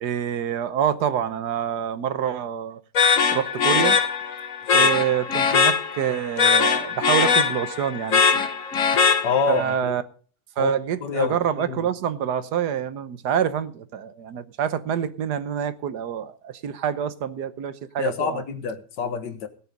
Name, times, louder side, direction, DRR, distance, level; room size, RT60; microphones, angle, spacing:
voice 1, 0.0-2.8 3.3-4.0 4.7-8.5 9.5-10.0 10.6-18.4, right 9 dB, 70° right, 1.5 m, -26 dB
sound 1, 2.9-9.7, left 6 dB, 50° left, 1.5 m, -21 dB
voice 2, 9.2-10.0 10.6-10.7 11.0-11.8 18.0-19.5, left 5 dB, 90° left, 2.0 m, -27 dB
17.0 x 8.2 x 5.3 m
omnidirectional pair, 1.8 m